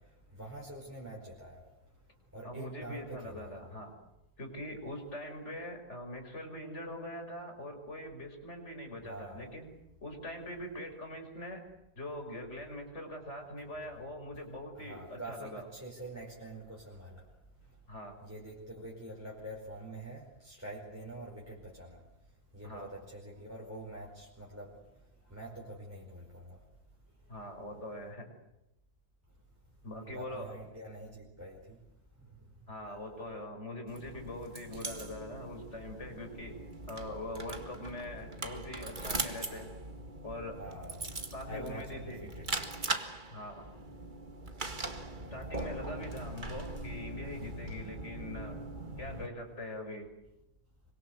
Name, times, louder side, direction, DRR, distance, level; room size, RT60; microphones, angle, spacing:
voice 1, 0.4-1.6 2.3-3.6 9.0-9.5 14.7-17.2 18.2-22.0 22.5-24.7 25.3-26.6 30.0-31.8 32.9-33.0 40.6-42.7 45.2-45.5, right 1 dB, 5° right, -2 dB, 5.0 m, -46 dB
voice 2, 2.4-3.9 4.4-9.7 10.0-11.6 12.0-15.7 17.9-18.2 22.6-22.9 27.3-28.3 29.8-30.5 32.7-36.6 36.9-39.7 40.2-40.6 41.3-42.3 43.3-43.6 45.3-48.6 49.0-50.1, left 1 dB, 35° left, 4 dB, 6.0 m, -42 dB
sound 1, 33.9-49.3, right 2 dB, 25° right, 1.9 m, -41 dB
26.5 x 25.0 x 8.1 m, 0.90 s
omnidirectional pair, 2.1 m